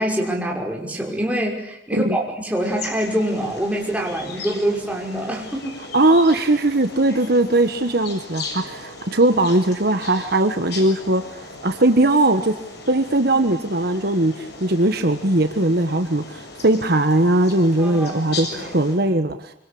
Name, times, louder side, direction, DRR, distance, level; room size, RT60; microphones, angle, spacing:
voice 1, 0.0-5.8 17.8-18.8, right 1 dB, 5° right, 0 dB, 5.9 m, -25 dB
sound 1, 2.6-18.9, left 3 dB, 60° left, 7.1 m, -37 dB
voice 2, 5.9-12.5 12.9-19.5, right 2 dB, 55° right, 8 dB, 1.4 m, -19 dB
25.5 x 25.5 x 8.7 m, 0.76 s
head